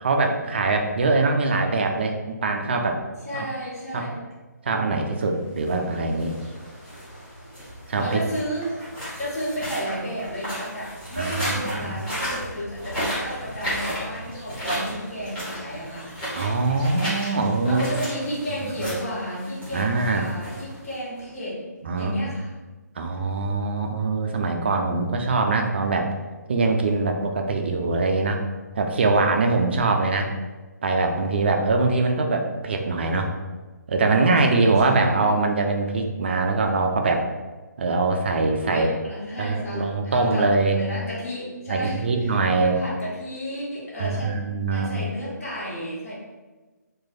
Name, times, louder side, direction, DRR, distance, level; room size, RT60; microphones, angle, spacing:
voice 1, 0.0-3.0 3.3-3.5 3.9-4.1 4.6-6.4 7.9-8.2 11.2-11.9 16.4-17.9 18.6-18.9 19.7-20.3 21.8-22.2 23.0-26.1 26.5-28.5 28.8-30.3 30.8-33.4 33.9-37.3 37.8-38.9 39.4-40.8 41.7-42.7 44.0-45.0, right 3 dB, 35° right, 4 dB, 0.3 m, -23 dB
voice 2, 3.2-4.2 8.0-8.8 9.2-16.1 17.6-21.6 21.9-22.5 34.4-35.4 38.6-44.3 44.7-46.1, equal, 50° left, -7 dB, 1.5 m, -32 dB
sound 1, 5.5-21.2, equal, 10° left, 1.1 m, -34 dB
3.0 x 2.2 x 3.8 m, 1.3 s
figure-of-eight pair, 145°, 10 cm